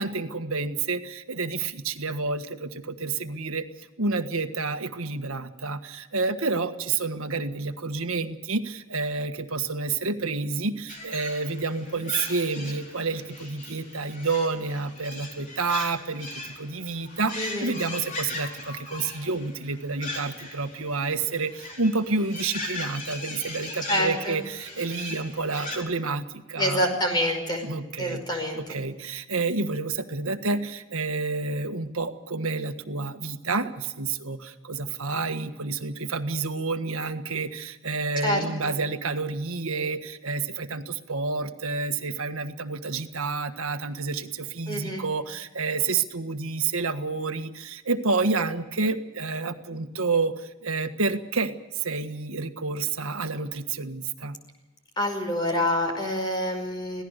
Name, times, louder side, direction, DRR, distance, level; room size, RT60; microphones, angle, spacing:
voice 1, 0.0-3.7 4.0-26.8 27.6-54.3, right 4 dB, 75° right, 8 dB, 1.6 m, -29 dB
sound 1, 10.9-25.8, left 2 dB, 35° left, 4.4 m, -38 dB
voice 2, 17.4-17.7 23.9-24.4 26.6-27.6 28.0-28.6 38.2-38.7 44.7-45.0 55.0-57.0, left 1 dB, 20° left, 4 dB, 5.3 m, -27 dB
26.0 x 17.5 x 6.6 m, 1.0 s
head